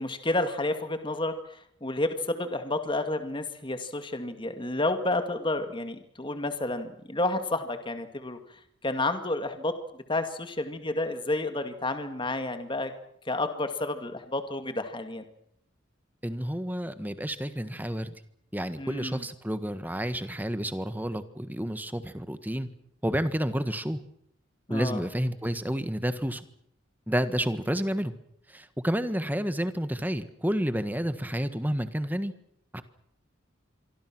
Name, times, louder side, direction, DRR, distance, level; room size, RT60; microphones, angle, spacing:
voice 1, 0.0-1.3 1.8-8.4 8.8-9.7 10.1-12.9 13.3-15.2 18.8-19.2 24.7-25.0, left 2 dB, 25° left, 8 dB, 2.3 m, -30 dB
voice 2, 16.2-18.1 18.5-22.7 23.0-24.0 24.7-26.4 27.1-28.1 28.5-32.3 32.7-32.8, equal, 10° right, 11 dB, 1.6 m, -30 dB
26.0 x 24.5 x 6.2 m, 0.70 s
head